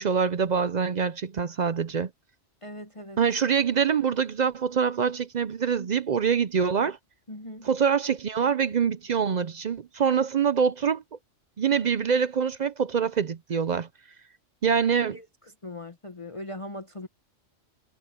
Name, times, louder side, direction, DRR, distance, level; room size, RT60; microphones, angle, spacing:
voice 1, 0.0-2.1 3.2-7.0 7.6-11.0 11.6-13.9 14.6-15.2, right 6 dB, 50° right, 0.5 m, -25 dB
voice 2, 2.6-3.2 7.3-7.7 15.1-15.3 15.6-17.1, left 1 dB, 30° left, 1.0 m, -39 dB
omnidirectional pair, 1.2 m